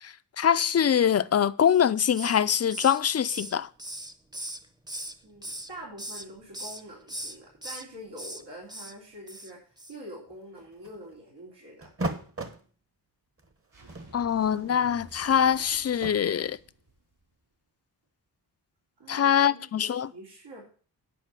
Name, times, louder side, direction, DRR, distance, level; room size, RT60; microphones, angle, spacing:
voice 1, 0.0-3.7 14.1-16.6 19.1-20.1, left 8 dB, 40° left, 0.4 m, -24 dB
Hiss, 1.7-2.4 2.7-5.2 5.4-6.3 6.5-6.8 7.1-7.8 8.2-8.4 8.7-8.9 9.3-9.5 9.8-9.9, right 1 dB, 10° right, 0.8 m, -39 dB
voice 2, 5.2-11.9 19.0-20.6, equal, 85° right, 3.7 m, -45 dB
sound 1, 10.3-11.1 11.8-12.6 13.4-13.5 13.8-16.1, right 2 dB, 30° right, 1.2 m, -37 dB
sound 2, 13.7-17.4, right 2 dB, 60° right, 6.0 m, -53 dB
9.7 x 5.5 x 7.5 m
wide cardioid pair, 100°, 42 cm